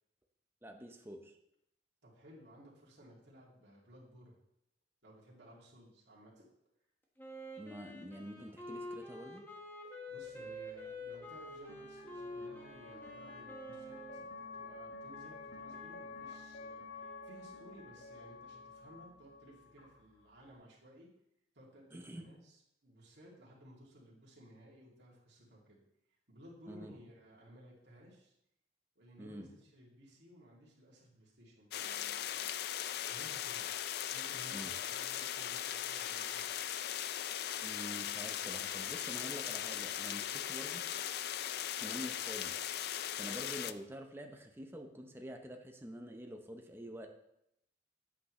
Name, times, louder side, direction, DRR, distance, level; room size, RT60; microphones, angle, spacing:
voice 1, 0.6-1.3 7.6-9.5 21.9-22.2 26.7-26.9 29.2-29.5 34.5-34.7 37.6-40.8 41.8-42.5 43.2-47.1, equal, 10° right, 3 dB, 0.7 m, -47 dB
voice 2, 2.0-4.4 5.0-6.4 9.8-21.1 21.5-25.8 26.3-28.3 29.0-33.7 34.0-36.5, equal, 65° right, -5 dB, 2.5 m, -58 dB
Wind instrument woodwind instrument, 7.2-14.3, left 1 dB, 10° left, 1.2 m, -47 dB
sound 1, 10.2-20.5, left 3 dB, 75° left, 1.5 m, -51 dB
sound 2, 31.7-43.7, left 11 dB, 55° left, 0.3 m, -39 dB
8.4 x 8.0 x 3.1 m, 0.80 s
head